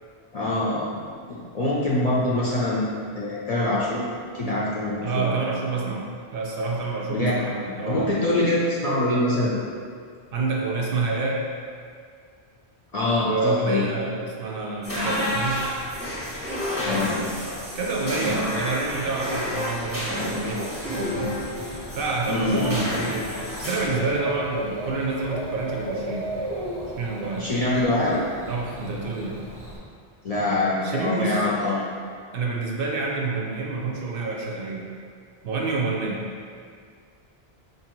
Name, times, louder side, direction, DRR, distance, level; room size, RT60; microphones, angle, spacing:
voice 1, 0.3-0.9 1.3-4.0 4.3-5.3 7.1-7.4 7.9-9.5 12.9-13.8 16.8-17.2 22.3-22.8 27.4-28.2 30.2-31.8, left 1 dB, 50° left, -6 dB, 0.5 m, -24 dB
voice 2, 5.0-8.1 10.3-11.4 13.2-15.7 17.7-21.4 21.9-26.3 27.0-27.5 28.5-29.4 30.8-31.5 32.3-34.9 35.4-36.2, right 3 dB, 65° right, -2 dB, 0.7 m, -28 dB
sound 1, 14.8-23.9, left 1 dB, 15° left, 0.9 m, -29 dB
Bird / Cricket, 21.1-29.8, right 1 dB, 30° right, 0.6 m, -36 dB
4.5 x 2.7 x 2.9 m, 2.2 s
omnidirectional pair, 1.1 m